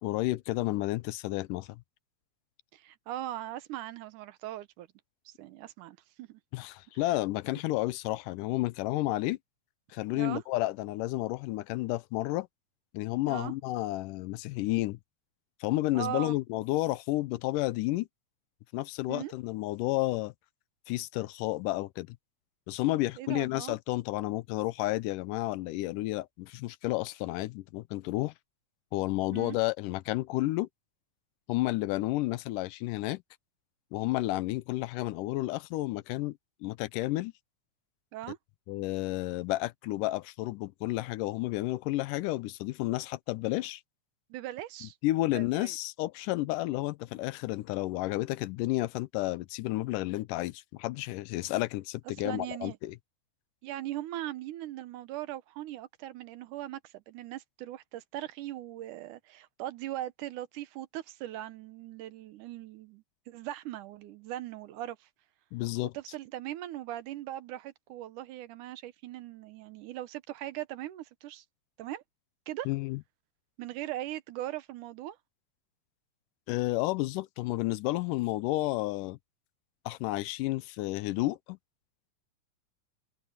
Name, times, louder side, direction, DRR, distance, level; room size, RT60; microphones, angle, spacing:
voice 1, 0.0-1.8 6.5-9.4 9.9-12.5 12.9-15.0 15.6-18.1 18.7-20.3 20.9-22.1 22.7-28.3 28.9-30.7 31.5-33.2 33.9-37.3 38.7-43.8 45.0-53.0 65.5-65.9 72.7-73.0 76.5-79.2 79.9-81.6, left 18 dB, 80° left, 2.1 m, -31 dB
voice 2, 2.7-4.9 5.3-6.4 10.2-10.4 13.3-13.5 15.9-16.4 19.1-19.3 23.2-23.8 29.3-29.6 38.1-38.4 44.3-45.0 45.3-45.8 52.2-52.8 53.6-65.1 65.9-71.4 71.8-72.0 72.5-72.7 73.6-75.2, right 14 dB, 75° right, 2.3 m, -39 dB
omnidirectional pair, 3.8 m